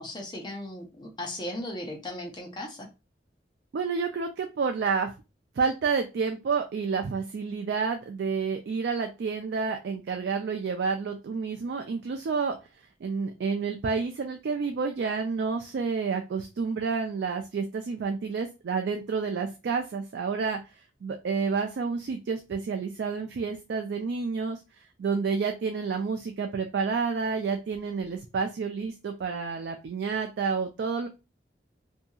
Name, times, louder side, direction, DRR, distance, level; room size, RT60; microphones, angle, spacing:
voice 1, 0.0-2.9, left 1 dB, 25° left, 1 dB, 0.5 m, -37 dB
voice 2, 3.7-5.1 5.6-12.6 13.0-20.6 21.0-24.6 25.0-31.1, right 5 dB, 75° right, 5 dB, 0.3 m, -29 dB
2.7 x 2.6 x 2.3 m, 0.28 s
head